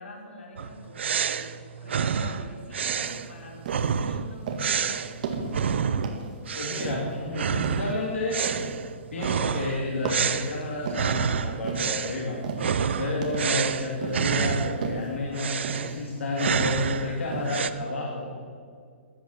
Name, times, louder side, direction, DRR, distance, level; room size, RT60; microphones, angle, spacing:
voice 1, 0.0-5.0, left 1 dB, 70° left, 0 dB, 4.5 m, -45 dB
sound 1, 0.6-6.2 6.5-7.0 7.3-14.9 15.3-17.7, right 7 dB, 65° right, 0.7 m, -29 dB
sound 2, 2.9-3.2 3.7-4.0 4.5-4.8 5.2-5.6 6.0-6.4 6.8-7.2 7.6-8.0 8.5-8.8 9.2-9.6 10.0-11.2 11.6-12.0 12.4-12.8 13.2-13.6 14.0-14.4 14.8-15.1 15.6-16.0 16.5-16.9 17.3-17.5, right 5 dB, 35° right, 1.9 m, -34 dB
voice 2, 6.5-8.4 9.1-12.4 13.0-18.3, left 2 dB, 85° left, -2 dB, 3.1 m, -30 dB
14.0 x 10.5 x 8.4 m, 2.1 s
hypercardioid pair, 180°, 7 cm